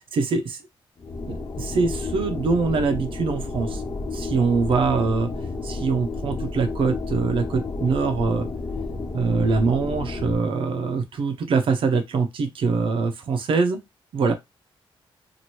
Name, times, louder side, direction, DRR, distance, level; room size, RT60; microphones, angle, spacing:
voice 1, 0.1-0.6 1.3-3.8 4.1-5.3 5.6-8.5 9.1-13.8 14.1-14.3, right 4 dB, 65° right, 0.6 m, -23 dB
sound 1, 1.0-10.4, left 3 dB, 35° left, 0.6 m, -31 dB
2.9 x 2.5 x 3.0 m
cardioid pair, 125°, 10 cm